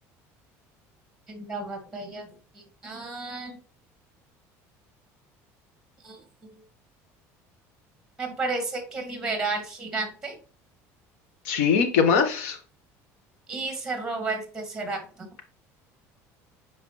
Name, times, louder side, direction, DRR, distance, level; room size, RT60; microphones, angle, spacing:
voice 1, 1.3-2.3 2.8-3.6 6.0-6.2 8.2-10.4 13.5-15.3, right 3 dB, 10° right, 4 dB, 2.1 m, -32 dB
voice 2, 11.4-12.6, left 6 dB, 90° left, 8 dB, 1.3 m, -21 dB
7.6 x 4.9 x 3.1 m, 0.38 s
supercardioid pair, 110°, 7 cm